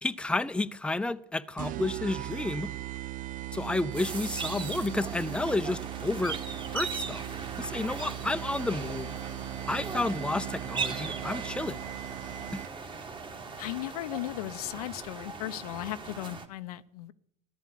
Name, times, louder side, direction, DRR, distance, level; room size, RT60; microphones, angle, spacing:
voice 1, 0.0-2.7 3.5-6.4 6.7-7.2 7.6-9.1 9.7-11.8 12.5-12.6, left 2 dB, 5° left, 0.6 m, -31 dB
sound 1, 1.6-13.0, right 14 dB, 45° right, 0.5 m, -39 dB
sound 2, 3.0-3.1 3.5-3.6 4.1-4.2 4.7-4.8 5.3-5.4 5.9-6.0 6.5-6.6 7.1-7.2 7.7-7.8 8.2-8.3 8.8-8.9 9.4-9.5 10.0-10.1 10.6-10.7 11.2-11.3 11.8-11.9 12.4-12.5 13.0-13.1 13.6-13.7 14.2-14.3 14.8-14.9 15.3-15.4, right 6 dB, 65° right, 3.7 m, -59 dB
sound 3, 3.9-16.5, right 4 dB, 25° right, 2.2 m, -39 dB
voice 2, 13.6-17.1, left 15 dB, 90° left, 0.8 m, -36 dB
13.5 x 11.5 x 8.4 m
supercardioid pair, 90°, 19 cm